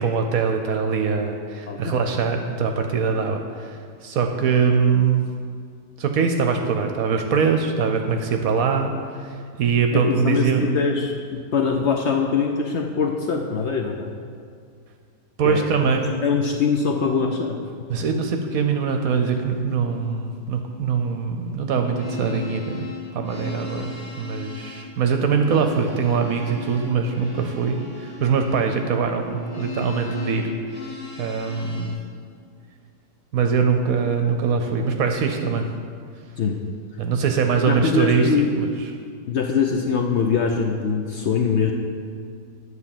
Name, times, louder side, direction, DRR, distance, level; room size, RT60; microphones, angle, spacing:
voice 1, 0.0-5.2 6.0-8.9 9.2-10.8 15.4-16.0 17.9-22.9 23.1-30.7 31.2-32.0 33.3-35.6 37.0-38.3 38.6-38.7, right 5 dB, 65° right, 5 dB, 1.0 m, -22 dB
voice 2, 1.7-2.0 9.9-14.1 15.4-17.6 36.4-36.6 37.6-38.5 39.3-41.7, left 5 dB, 65° left, 1 dB, 0.7 m, -23 dB
sound 1, 21.7-32.0, left 3 dB, 30° left, 0.8 m, -37 dB
9.9 x 4.1 x 7.2 m, 2.2 s
omnidirectional pair, 1.8 m